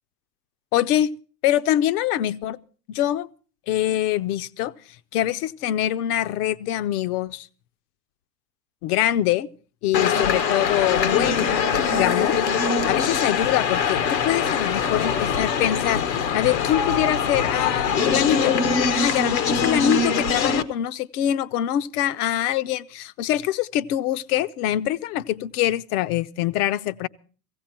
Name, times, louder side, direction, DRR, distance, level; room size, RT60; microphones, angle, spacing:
voice 1, 0.7-1.1 1.4-2.6 2.9-3.3 3.7-4.7 5.1-7.5 8.8-9.5 9.8-12.4 12.8-18.6 18.9-27.1, left 12 dB, 65° left, 0.7 m, -24 dB
sound 1, 9.9-20.6, left 6 dB, 85° left, 1.1 m, -23 dB
16.5 x 16.0 x 4.3 m
hypercardioid pair, 80°, 49 cm